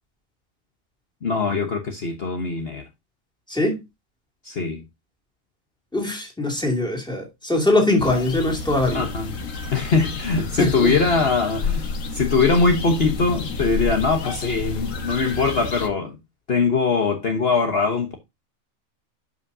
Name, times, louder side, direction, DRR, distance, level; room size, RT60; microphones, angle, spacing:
voice 1, 1.2-2.8 4.4-4.8 8.9-9.3 9.7-11.9 12.1-16.2 16.5-18.2, left 4 dB, 50° left, 1.3 m, -22 dB
voice 2, 3.5-3.8 5.9-9.0 10.6-10.9, left 2 dB, 5° left, 2.6 m, -22 dB
sound 1, 8.0-15.9, left 4 dB, 75° left, 1.6 m, -30 dB
12.5 x 5.7 x 2.7 m
omnidirectional pair, 1.4 m